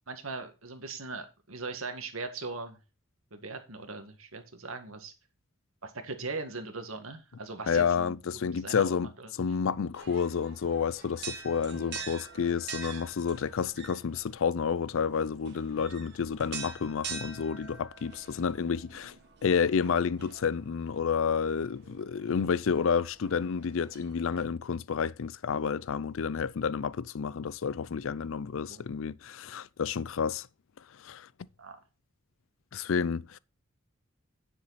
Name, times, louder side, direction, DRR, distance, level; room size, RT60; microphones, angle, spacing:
voice 1, 0.1-2.8 3.3-5.1 5.8-8.1 8.4-9.3 24.3-24.5 28.7-28.8 31.6-31.8, right 3 dB, 80° right, 1.9 m, -40 dB
voice 2, 7.7-9.1 9.4-19.1 19.4-30.5 31.0-31.3 32.7-33.4, left 6 dB, 70° left, 0.5 m, -30 dB
sound 1, 9.9-24.4, right 5 dB, 55° right, 1.7 m, -46 dB
9.8 x 7.2 x 4.1 m
head